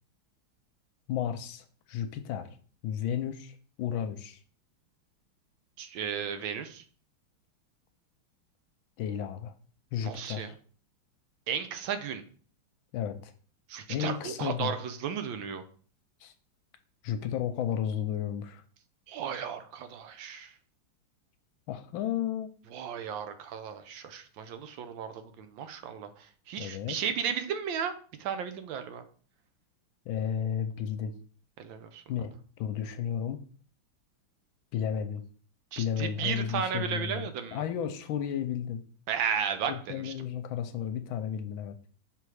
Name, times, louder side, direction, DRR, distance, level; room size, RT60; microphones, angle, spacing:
voice 1, 1.1-2.5 2.8-4.4 9.0-9.5 9.9-10.5 12.9-13.3 13.9-14.7 16.2-16.3 17.0-18.6 21.7-22.5 26.6-27.0 30.1-31.1 32.1-32.3 32.6-33.4 34.7-35.2 35.8-38.8 39.7-41.8, left 9 dB, 75° left, 9 dB, 1.3 m, -33 dB
voice 2, 5.8-6.8 10.0-10.5 11.5-12.2 13.7-15.6 19.1-20.5 22.7-27.9 28.2-29.0 31.6-32.0 35.7-37.6 39.1-40.1, right 7 dB, 75° right, 9 dB, 1.3 m, -34 dB
5.8 x 3.5 x 4.7 m, 0.43 s
omnidirectional pair, 2.3 m